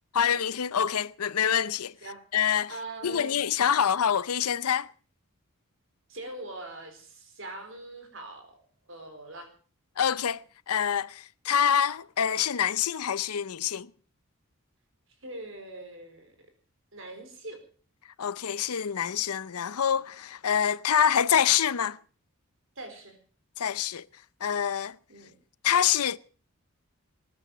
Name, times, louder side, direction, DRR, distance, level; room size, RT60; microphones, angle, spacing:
voice 1, 0.1-1.9 2.3-2.7 3.0-4.9 10.0-13.9 18.2-22.0 23.6-24.0 24.4-25.0 25.6-26.2, left 8 dB, 85° left, 0.6 m, -26 dB
voice 2, 2.7-3.3 6.1-8.6 8.9-9.5 11.5-11.6 15.2-16.3 16.9-17.6 22.8-23.2 25.1-25.3, right 2 dB, 60° right, 4.3 m, -42 dB
20.0 x 9.7 x 6.6 m
head